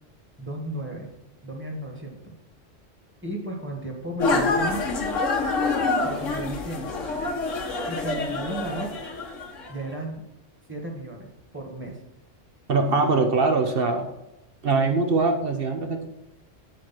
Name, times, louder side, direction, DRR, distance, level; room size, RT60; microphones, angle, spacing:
voice 1, 0.4-1.1 1.4-2.3 3.2-4.8 6.0-6.9 7.9-8.9 9.7-10.2 10.7-11.3 11.5-11.9, right 1 dB, 10° right, 0 dB, 1.8 m, -34 dB
sound 1, 4.2-9.7, left 3 dB, 90° left, 1.5 m, -26 dB
voice 2, 12.7-14.1 14.6-16.1, right 3 dB, 55° right, 5 dB, 1.0 m, -22 dB
9.2 x 4.8 x 5.9 m, 0.92 s
omnidirectional pair, 1.3 m